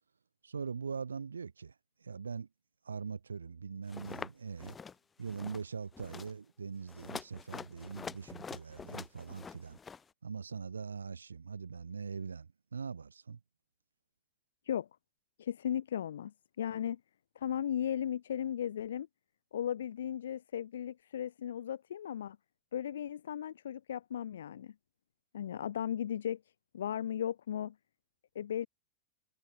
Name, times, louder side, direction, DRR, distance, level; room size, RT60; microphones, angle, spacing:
voice 1, 0.4-1.7 2.0-2.5 2.8-4.8 5.2-9.8 10.2-13.4, right 5 dB, 75° right, 1.7 m, -42 dB
sound 1, 3.9-4.3 4.6-4.9 5.2-5.6 5.9-6.3 6.9-10.0, left 6 dB, 15° left, 2.3 m, -46 dB
voice 2, 15.4-17.0 17.4-19.1 19.5-22.4 22.7-24.7 25.3-26.4 26.7-27.7 28.3-28.7, left 10 dB, 65° left, 0.5 m, -36 dB
figure-of-eight pair, 90°, 0 cm